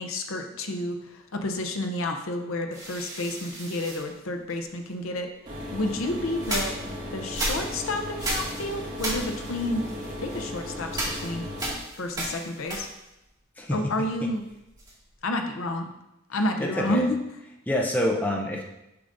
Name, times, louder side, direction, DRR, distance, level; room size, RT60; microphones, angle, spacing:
voice 1, 0.0-5.3 5.7-6.7 7.1-9.8 10.2-11.5 12.0-12.9 13.7-14.4 15.2-15.9 16.3-17.2, left 1 dB, 70° left, 5 dB, 0.7 m, -30 dB
sound 1, 2.7-4.9 5.6-13.2 13.5-15.2, right 1 dB, 20° right, 1.9 m, -35 dB
sound 2, 5.5-11.7, left 1 dB, 40° right, 2.0 m, -36 dB
voice 2, 16.6-17.0 17.7-18.6, equal, 10° left, -1 dB, 0.6 m, -26 dB
6.8 x 6.6 x 2.6 m, 0.90 s
head